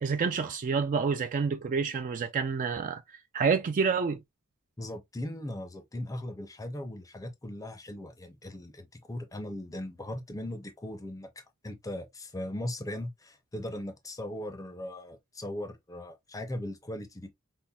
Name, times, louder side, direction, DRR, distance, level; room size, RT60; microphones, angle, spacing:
voice 1, 0.0-3.0 3.3-4.2, right 5 dB, 35° right, 0.3 m, -28 dB
voice 2, 4.8-17.3, left 1 dB, 15° left, 0.6 m, -39 dB
5.4 x 2.1 x 2.2 m
head